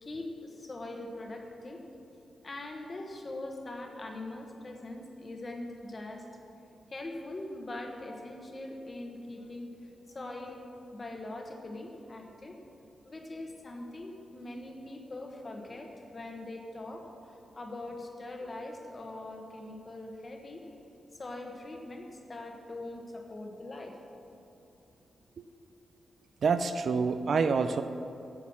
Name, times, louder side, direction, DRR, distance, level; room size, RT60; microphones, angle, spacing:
voice 1, 0.0-1.8 2.4-6.3 6.9-10.6 10.9-12.6 13.0-20.7 21.1-24.0, left 2 dB, 25° left, 2 dB, 1.2 m, -42 dB
voice 2, 26.4-27.8, right 5 dB, 50° right, 10 dB, 0.4 m, -27 dB
9.4 x 8.3 x 7.2 m, 2.7 s
wide cardioid pair, 170°, 0 cm